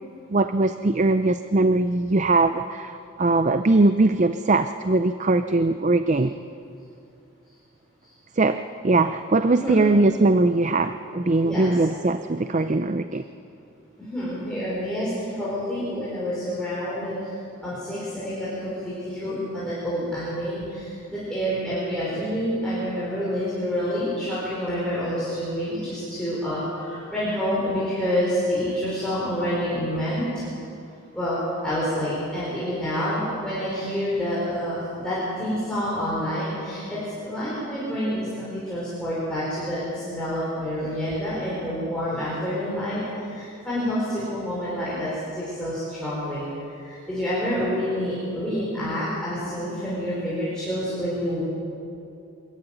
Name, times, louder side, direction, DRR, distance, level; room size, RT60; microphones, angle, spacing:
voice 1, 0.3-6.3 8.4-13.2, right 2 dB, 35° right, 10 dB, 0.5 m, -21 dB
voice 2, 9.5-9.9 11.4-11.8 14.0-17.3 17.6-30.4 31.1-31.4 31.6-46.5 46.7-51.4, equal, 5° left, -10 dB, 5.2 m, -28 dB
24.0 x 14.0 x 9.2 m, 2.6 s
head